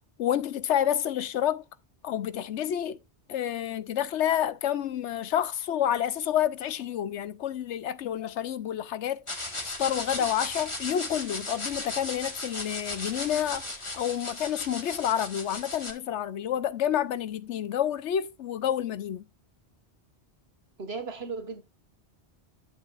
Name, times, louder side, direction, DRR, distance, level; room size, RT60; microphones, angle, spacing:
voice 1, 0.2-1.6 2.0-3.0 3.3-9.4 9.8-13.6 13.9-19.2, left 10 dB, 90° left, 1.0 m, -29 dB
sound 1, 9.3-15.9, left 2 dB, 25° left, 1.7 m, -36 dB
voice 2, 20.8-21.6, right 4 dB, 65° right, 1.8 m, -36 dB
11.5 x 7.4 x 2.5 m
omnidirectional pair, 1.2 m